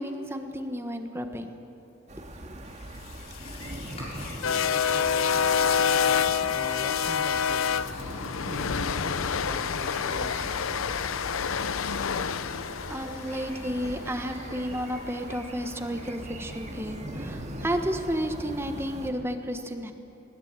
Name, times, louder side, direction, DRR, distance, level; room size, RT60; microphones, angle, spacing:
voice 1, 0.0-1.5 2.4-2.6 12.9-19.9, equal, 10° right, 1.2 m, -32 dB
sound 1, 1.7-6.8, left 1 dB, 30° left, 6.4 m, -51 dB
sound 2, 2.1-19.1, right 1 dB, 35° right, 2.0 m, -41 dB
sound 3, 3.2-15.4, left 7 dB, 80° left, 0.6 m, -28 dB
voice 2, 4.5-11.1, equal, 15° left, 1.1 m, -43 dB
21.0 x 19.0 x 9.0 m
head